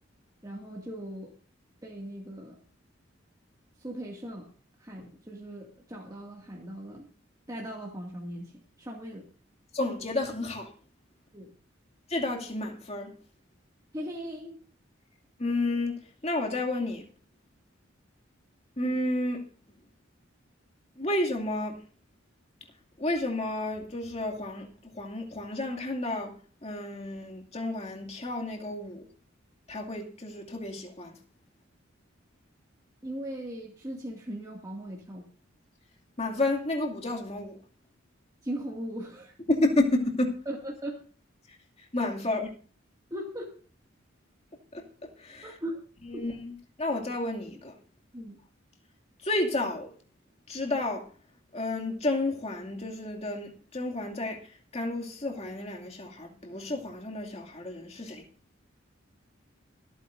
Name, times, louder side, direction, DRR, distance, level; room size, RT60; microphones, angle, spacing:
voice 1, 0.4-1.3 1.8-2.6 3.8-4.5 4.8-7.1 7.5-9.3 11.3-11.5 13.9-14.6 33.0-35.2 38.4-39.3 40.5-40.9 43.1-43.5 45.4-45.8 48.1-48.4, right 1 dB, 20° right, 2.2 m, -38 dB
voice 2, 9.7-10.7 12.1-13.1 15.4-17.0 18.8-19.4 21.0-21.8 23.0-24.7 25.0-26.3 26.6-29.0 29.7-31.1 36.2-37.6 39.5-40.3 41.9-42.5 44.7-44.8 45.2-45.5 46.1-46.5 46.8-47.7 49.2-49.9 50.5-51.0 51.5-54.4 54.7-58.2, left 2 dB, 35° left, 2.5 m, -31 dB
26.5 x 9.2 x 2.6 m
head